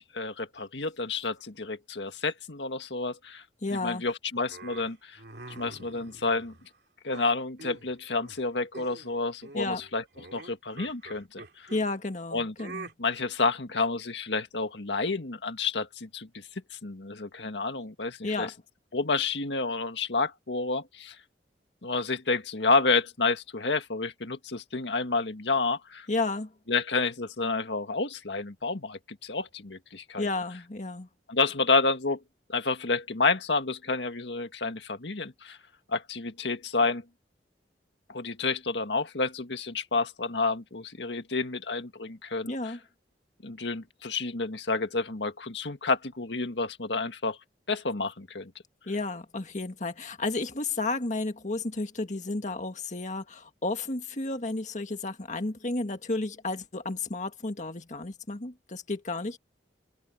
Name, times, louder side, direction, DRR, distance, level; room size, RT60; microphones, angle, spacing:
voice 1, 0.0-3.4 3.7-5.2 5.5-6.5 7.0-10.0 10.3-11.7 12.3-12.5 13.0-18.5 18.9-21.2 21.8-26.1 26.7-30.3 31.3-32.2 32.5-35.6 35.9-37.0 38.1-42.8 43.4-47.4 47.7-48.5, left 3 dB, 80° left, 1.8 m, -30 dB
voice 2, 3.6-4.0 9.6-9.8 11.7-12.9 18.2-18.5 26.1-26.5 30.2-31.1 42.5-42.8 48.9-59.4, left 2 dB, 45° left, 1.8 m, -32 dB
sound 1, 4.5-6.7 7.1-7.9 8.2-8.5 8.7-9.1 9.4-11.8 12.6-12.9, right 3 dB, 70° right, 2.6 m, -45 dB
head